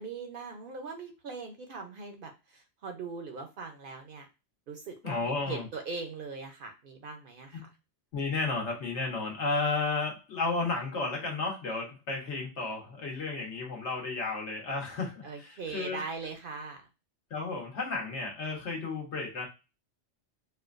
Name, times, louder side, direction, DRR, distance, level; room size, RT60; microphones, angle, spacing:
voice 1, 0.0-4.3 4.7-7.7 15.2-16.9, right 4 dB, 60° right, 5 dB, 0.7 m, -41 dB
voice 2, 5.0-5.7 7.5-7.6 8.1-16.0 17.3-19.5, left 3 dB, 75° left, -1 dB, 1.4 m, -33 dB
4.3 x 2.2 x 2.4 m, 0.27 s
omnidirectional pair, 1.2 m